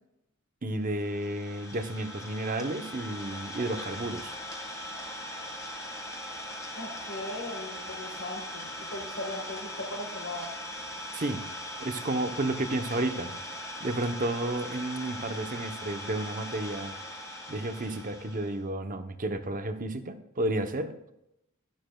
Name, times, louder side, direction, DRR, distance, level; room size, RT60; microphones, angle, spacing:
voice 1, 0.6-4.4 11.1-11.4 11.8-13.3 13.8-17.0 17.5-20.9, right 2 dB, 40° right, 8 dB, 0.8 m, -32 dB
Idling, 0.9-18.6, equal, 15° left, 1.8 m, -40 dB
voice 2, 6.8-10.5, left 1 dB, 65° left, -1 dB, 1.6 m, -38 dB
11.5 x 11.0 x 2.3 m, 0.82 s
head